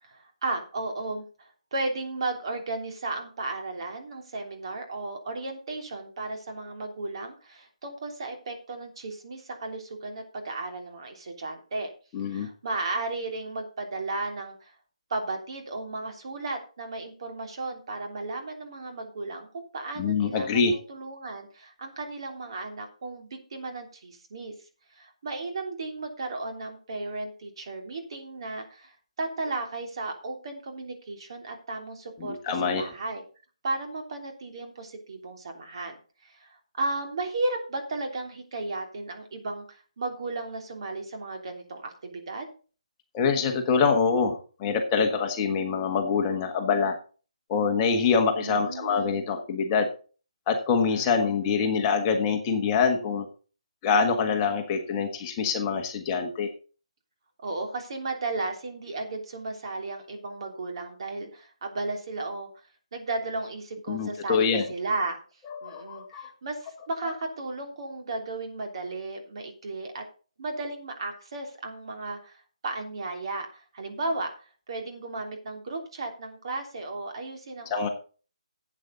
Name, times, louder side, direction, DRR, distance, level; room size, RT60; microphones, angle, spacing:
voice 1, 0.0-11.9 12.2-14.7 15.1-19.5 19.7-24.5 24.9-33.2 33.6-35.9 36.2-42.5 48.4-49.2 50.9-51.1 51.5-51.8 57.4-62.5 62.9-65.2 65.6-70.0 70.4-77.9, right 2 dB, 50° right, 3 dB, 3.2 m, -34 dB
voice 2, 12.1-12.5 20.0-20.7 32.2-32.8 43.1-47.0 47.5-49.9 50.5-53.3 53.8-56.5 63.9-64.6 65.5-66.3 77.7-77.9, left 5 dB, 20° left, 3 dB, 1.4 m, -25 dB
12.0 x 8.4 x 3.9 m, 0.37 s
hypercardioid pair, 165°, 4 cm